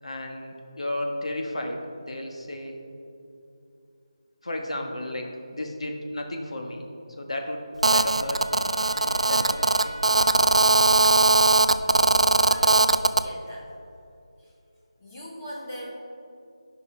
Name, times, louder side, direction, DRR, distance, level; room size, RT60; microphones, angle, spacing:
voice 1, 0.0-2.8 4.4-6.8 7.2-7.7 7.9-10.0, left 1 dB, 80° left, 2 dB, 1.3 m, -33 dB
Telephone, 7.8-13.2, right 3 dB, 90° right, 0.4 m, -20 dB
Trumpet, 8.1-10.6, right 1 dB, 25° right, 2.0 m, -41 dB
voice 2, 12.4-13.7 14.4-14.5 15.0-15.9, equal, 15° left, -4 dB, 0.7 m, -41 dB
13.5 x 5.3 x 3.2 m, 2.6 s
figure-of-eight pair, 180°, 3 cm